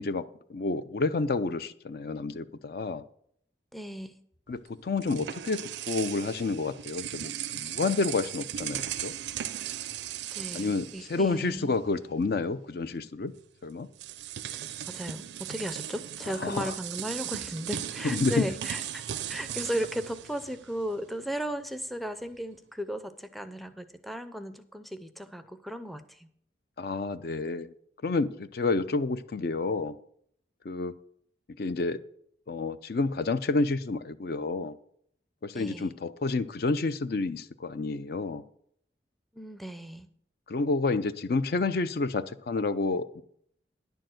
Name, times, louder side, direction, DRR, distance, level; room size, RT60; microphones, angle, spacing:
voice 1, 0.0-3.0 4.5-9.1 10.5-13.3 13.6-13.9 16.4-16.7 18.0-18.5 26.8-27.7 28.0-30.0 30.6-30.9 31.6-32.0 32.5-34.8 35.4-38.4 40.5-43.2, left 3 dB, 55° left, 0.5 m, -29 dB
voice 2, 3.7-4.1 10.3-11.8 14.9-26.3 35.5-36.0 39.3-40.1, equal, ahead, 0.5 m, -36 dB
sound 1, 4.5-11.8 12.1-12.3 13.4-13.5 13.9-21.1, right 11 dB, 75° right, 0.4 m, -37 dB
10.5 x 4.6 x 7.6 m
head